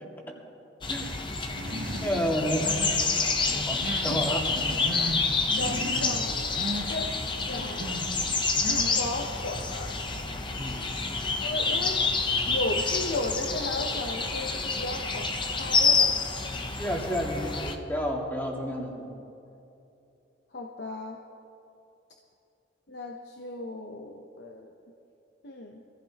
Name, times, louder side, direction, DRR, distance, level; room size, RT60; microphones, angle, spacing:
sound 1, 0.8-17.8, left 4 dB, 25° left, 0.8 m, -28 dB
voice 1, 0.9-1.4 2.0-2.7 3.7-4.4 10.6-10.9 16.7-19.1, equal, 10° left, -2 dB, 2.0 m, -30 dB
Human voice, 1.5-2.2 2.5-3.0 3.5-4.2 4.5-5.2 5.5-6.2 6.5-6.9 7.5-8.1 8.5-9.0, right 1 dB, 85° right, 2.0 m, -36 dB
voice 2, 3.2-3.6 4.1-4.2 5.6-6.5 6.9-7.2 7.5-8.0 8.6-9.9 11.4-12.1 12.5-16.1 20.5-21.2 22.9-24.7 25.4-25.8, left 2 dB, 60° left, 1 dB, 0.9 m, -35 dB
24.0 x 15.5 x 2.9 m, 2.7 s
head